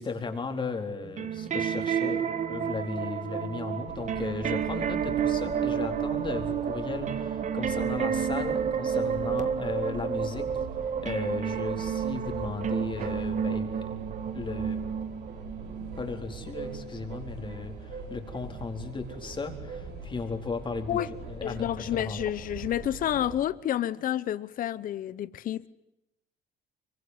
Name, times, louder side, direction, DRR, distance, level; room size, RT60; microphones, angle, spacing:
voice 1, 0.0-10.5 11.0-14.0 14.3-14.8 15.9-22.2, left 4 dB, 30° left, 4.2 m, -36 dB
sound 1, 1.0-17.8 18.5-18.6, right 7 dB, 45° right, 1.7 m, -31 dB
sound 2, 3.9-23.4, right 4 dB, 75° right, 5.1 m, -42 dB
voice 2, 21.4-25.7, left 11 dB, 55° left, 0.9 m, -30 dB
25.0 x 24.0 x 9.6 m
cardioid pair, 110°, 17 cm